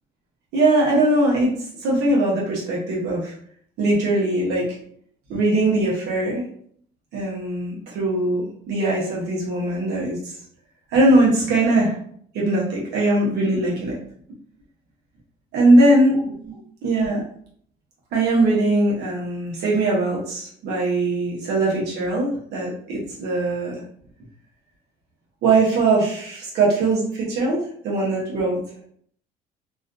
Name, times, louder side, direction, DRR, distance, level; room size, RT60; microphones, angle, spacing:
voice 1, 0.5-1.5 1.8-3.3 3.8-4.8 5.3-6.4 7.1-10.4 10.9-11.9 12.3-13.9 15.5-17.2 18.1-23.8 25.4-27.6 27.8-28.6, right 2 dB, 80° right, -5 dB, 0.8 m, -20 dB
2.4 x 2.2 x 2.4 m, 0.63 s
cardioid pair, 110°, 17 cm